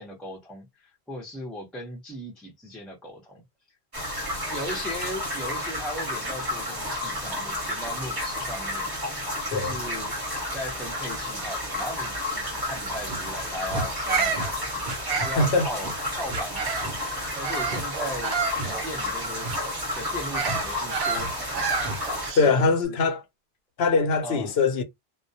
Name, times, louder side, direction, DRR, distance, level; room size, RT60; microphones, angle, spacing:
voice 1, 0.0-3.4 4.0-4.1 4.5-8.9 9.5-10.2 10.5-16.8 17.4-18.4 18.6-19.6 19.9-21.8 22.4-23.0 24.2-24.5, left 1 dB, ahead, 0.6 m, -37 dB
sound 1, 3.9-22.3, left 1 dB, 25° right, 1.0 m, -31 dB
sound 2, 13.0-13.2 13.7-13.9 14.3-14.5 14.8-15.0 15.3-15.5 15.8-16.0 16.3-16.4 16.8-17.0 17.7-17.8 18.6-18.7 19.4-19.6 20.4-20.6 21.1-21.3 21.8-22.0, right 2 dB, 60° right, 0.8 m, -34 dB
Bird vocalization bird call bird song, 13.9-17.0 17.4-22.7, right 5 dB, 90° right, 0.9 m, -31 dB
voice 2, 15.4-15.7 22.4-23.2 23.8-24.8, left 4 dB, 80° left, 0.9 m, -22 dB
2.3 x 2.0 x 2.7 m
omnidirectional pair, 1.0 m